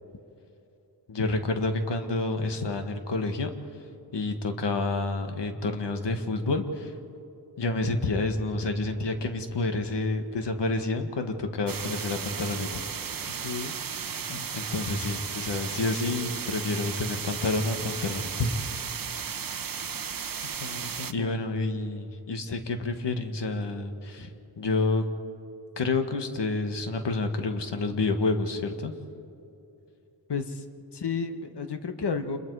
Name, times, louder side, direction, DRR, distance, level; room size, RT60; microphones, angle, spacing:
voice 1, 1.1-3.5 4.1-6.9 7.6-12.8 14.5-18.6 21.1-24.3 24.6-25.0 25.8-28.9, left 3 dB, 90° left, 6 dB, 1.7 m, -29 dB
sound 1, 11.7-21.1, right 7 dB, 55° right, 0.9 m, -35 dB
voice 2, 13.4-13.7 14.3-14.5 20.4-21.4 24.2-24.3 30.3-30.6 30.9-32.4, left 5 dB, 75° left, 8 dB, 1.5 m, -33 dB
28.0 x 22.0 x 4.8 m, 2.8 s
wide cardioid pair, 70°, 41 cm